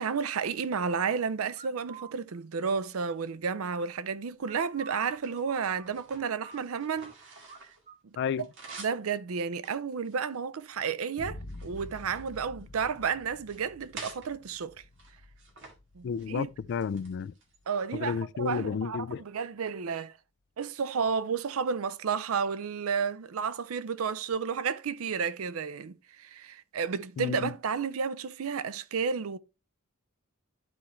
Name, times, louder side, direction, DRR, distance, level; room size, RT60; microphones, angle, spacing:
voice 1, 0.0-7.1 8.0-8.1 8.8-14.7 15.9-16.5 17.7-20.1 20.6-29.4, right 6 dB, 80° right, 0.5 m, -32 dB
sound 1, 1.5-2.1 4.4-7.1 7.5-7.6 7.9-8.8, right 5 dB, 30° right, 0.7 m, -49 dB
sound 2, 2.8-3.7 4.3-7.9 8.1-9.1 9.6-10.9 11.3-13.0 13.4-14.3 14.9-15.8 16.0-16.3 16.7-17.6, right 3 dB, 60° right, 2.0 m, -50 dB
voice 2, 8.2-8.5 16.0-17.3 17.9-19.2 27.2-27.5, left 6 dB, 55° left, 0.3 m, -32 dB
Boom, 11.2-19.0, left 2 dB, 80° left, 1.0 m, -49 dB
11.5 x 4.3 x 3.1 m
head